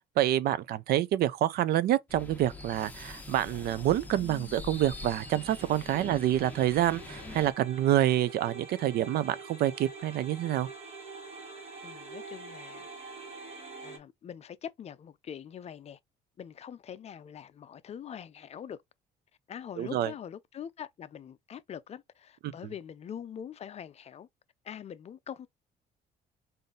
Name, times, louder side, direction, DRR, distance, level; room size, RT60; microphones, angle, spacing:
voice 1, 0.0-10.7 19.8-20.1, right 12 dB, 70° right, 0.5 m, -27 dB
sound 1, 2.1-7.5, left 3 dB, 10° left, 1.1 m, -44 dB
sound 2, 4.7-14.0, right 4 dB, 35° right, 1.5 m, -46 dB
voice 2, 11.8-12.9 13.8-16.0 16.4-18.8 19.5-24.3 24.6-25.5, left 8 dB, 40° left, 0.5 m, -43 dB
3.9 x 2.6 x 3.8 m
cardioid pair, 110°, 17 cm